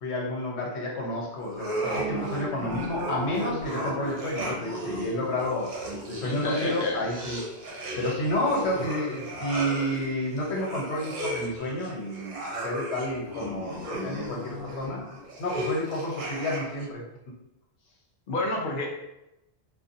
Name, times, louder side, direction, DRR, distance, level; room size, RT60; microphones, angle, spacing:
voice 1, 0.0-5.7 6.1-7.4 8.0-15.0 15.4-17.0, left 1 dB, 75° left, -3 dB, 1.0 m, -30 dB
sound 1, 1.5-16.9, equal, 55° right, 0.8 m, -35 dB
voice 2, 6.2-7.0 18.3-18.9, left 2 dB, 55° left, 0 dB, 0.7 m, -29 dB
2.5 x 2.3 x 2.6 m, 0.89 s
omnidirectional pair, 1.1 m